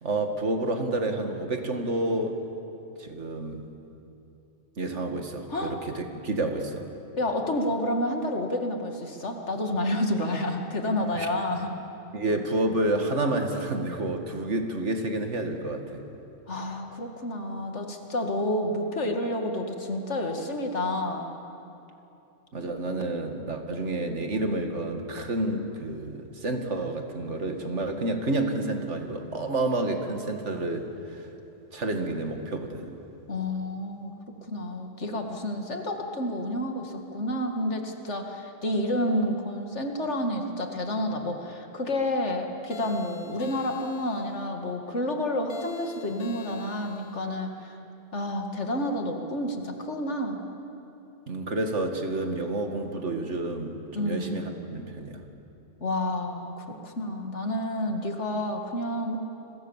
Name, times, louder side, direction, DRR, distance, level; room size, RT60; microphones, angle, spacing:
voice 1, 0.0-2.4 3.0-3.6 4.8-6.9 11.2-11.3 12.1-16.0 22.5-31.3 31.7-33.0 51.3-55.2, right 2 dB, 70° right, 5 dB, 2.3 m, -29 dB
voice 2, 7.2-11.7 16.5-21.3 33.3-34.1 34.5-47.8 48.1-50.4 53.9-54.4 55.8-59.2, left 1 dB, 70° left, 4 dB, 2.5 m, -29 dB
sound 1, 42.7-44.5 45.5-47.3, left 5 dB, 55° left, 1.0 m, -45 dB
30.0 x 22.5 x 7.3 m, 2.9 s
omnidirectional pair, 1.2 m